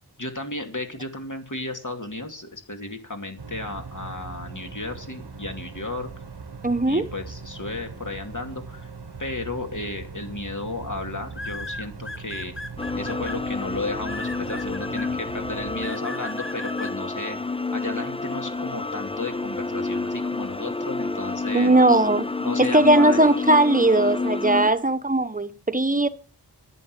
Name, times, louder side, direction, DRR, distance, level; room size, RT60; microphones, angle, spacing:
voice 1, 0.2-6.1 6.8-8.9 9.2-12.5 12.9-21.7 22.4-23.2, left 2 dB, 50° left, 2.4 m, -34 dB
sound 1, 3.4-15.9, right 4 dB, 80° right, 1.2 m, -40 dB
voice 2, 6.6-7.1 21.5-22.3 22.6-26.1, right 1 dB, 20° right, 1.1 m, -19 dB
sound 2, 9.8-10.1 11.3-13.3 14.0-15.1 15.8-16.9, left 2 dB, 30° left, 1.4 m, -36 dB
sound 3, 12.8-24.7, left 3 dB, 15° left, 0.6 m, -29 dB
11.0 x 7.9 x 8.3 m
wide cardioid pair, 40°, 40 cm